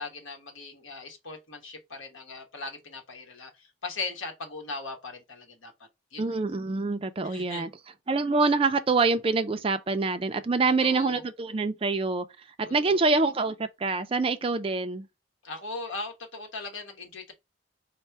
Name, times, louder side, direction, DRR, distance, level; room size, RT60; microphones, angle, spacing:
voice 1, 0.0-5.7 6.1-6.4 7.2-7.7 10.8-11.2 12.6-13.1 15.4-17.3, left 3 dB, 75° left, 1.2 m, -39 dB
voice 2, 6.2-7.7 8.1-12.3 12.6-15.1, right 3 dB, 25° right, 0.4 m, -26 dB
4.2 x 2.1 x 4.5 m
head